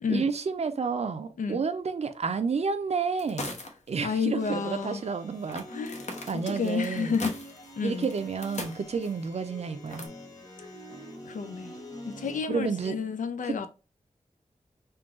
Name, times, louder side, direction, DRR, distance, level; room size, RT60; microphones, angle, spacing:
voice 1, 0.1-3.5 3.9-5.6 6.3-7.2 7.8-10.1 12.5-13.0 13.4-13.7, right 5 dB, 55° right, 0.5 m, -30 dB
sound 1, 3.2-3.9 4.2-4.3 5.5-9.2 9.9-10.1, left 2 dB, 65° left, 0.9 m, -39 dB
voice 2, 4.0-5.0 5.7-6.0 6.3-7.3 7.8-8.1 11.3-11.7 12.0-13.7, left 5 dB, 90° left, 0.5 m, -30 dB
sound 2, 4.4-12.4, equal, 30° left, 1.1 m, -45 dB
3.7 x 2.3 x 3.6 m
wide cardioid pair, 90°, 13 cm